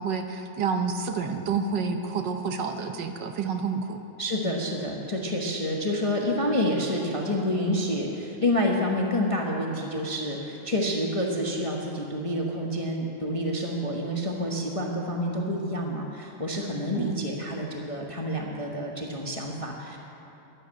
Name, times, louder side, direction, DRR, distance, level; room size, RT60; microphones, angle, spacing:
voice 1, 0.0-4.0 16.9-17.2, right 5 dB, 65° right, 6 dB, 1.3 m, -29 dB
voice 2, 4.2-20.0, left 1 dB, 25° left, -1 dB, 0.8 m, -28 dB
11.5 x 10.5 x 7.7 m, 2.9 s
omnidirectional pair, 2.2 m